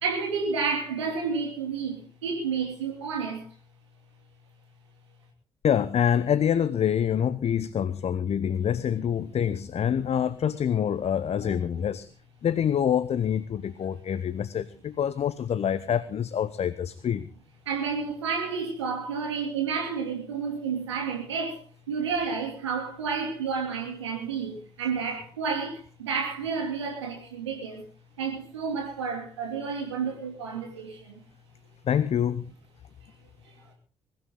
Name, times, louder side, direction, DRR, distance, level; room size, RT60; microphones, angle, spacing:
voice 1, 0.0-3.4 17.7-27.8 28.2-31.2, right 5 dB, 85° right, 2 dB, 2.8 m, -30 dB
voice 2, 5.6-12.1 12.4-17.3 31.8-32.5, left 9 dB, 50° left, 16 dB, 0.9 m, -26 dB
22.0 x 13.0 x 3.8 m, 0.37 s
figure-of-eight pair, 45°, 14 cm